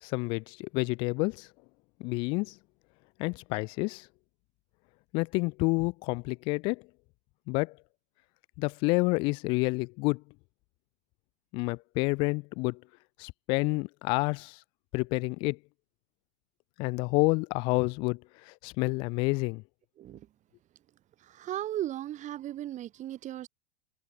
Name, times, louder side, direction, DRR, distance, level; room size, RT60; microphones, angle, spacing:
voice 1, 0.0-1.5 2.0-2.5 3.2-4.1 5.1-6.8 7.5-7.8 8.6-10.2 11.5-12.8 13.2-14.6 14.9-15.6 16.8-18.2 18.5-19.6, left 28 dB, 15° left, 0.4 m, -29 dB
voice 2, 20.0-20.3 21.2-23.5, right 12 dB, 20° right, 1.3 m, -36 dB
figure-of-eight pair, 105°, 35 cm